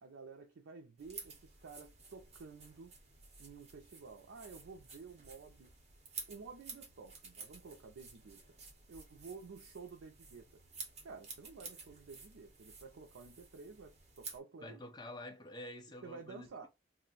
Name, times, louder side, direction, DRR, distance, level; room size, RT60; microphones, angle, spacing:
voice 1, 0.0-2.9 3.4-5.7 6.3-8.4 8.9-10.4 11.0-14.8 16.0-16.7, right 4 dB, 85° right, 0.5 m, -52 dB
sound 1, 1.0-14.4, right 4 dB, 35° right, 0.9 m, -52 dB
voice 2, 14.6-16.7, left 1 dB, 20° left, 0.5 m, -48 dB
2.5 x 2.1 x 3.8 m
head